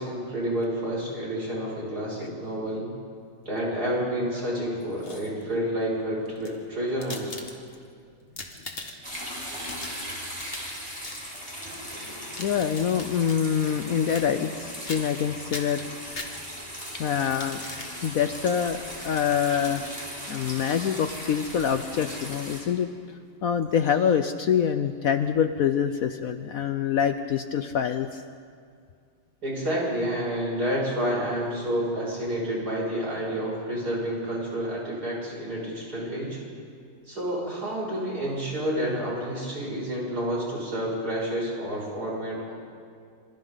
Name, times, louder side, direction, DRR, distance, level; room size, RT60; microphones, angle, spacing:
voice 1, 0.0-2.9 3.5-7.3 29.4-36.4 37.1-42.5, equal, 55° right, -4 dB, 7.2 m, -29 dB
sound 1, 4.8-5.5 6.2-7.9 8.2-9.1 9.5-10.8 11.0-11.3 12.1-13.4 14.1-14.6 14.9-15.2 15.5-16.7 17.2-17.9 18.6-18.7 19.1-19.2 19.6-19.7, left 2 dB, 30° left, 2.0 m, -40 dB
sound 2, 9.0-22.6, equal, 15° right, 5.7 m, -38 dB
voice 2, 12.4-15.8 16.9-17.6 18.0-19.9 20.3-22.9 23.4-28.2, left 8 dB, 65° left, 9 dB, 0.9 m, -25 dB
26.5 x 26.0 x 4.0 m, 2.2 s
omnidirectional pair, 2.0 m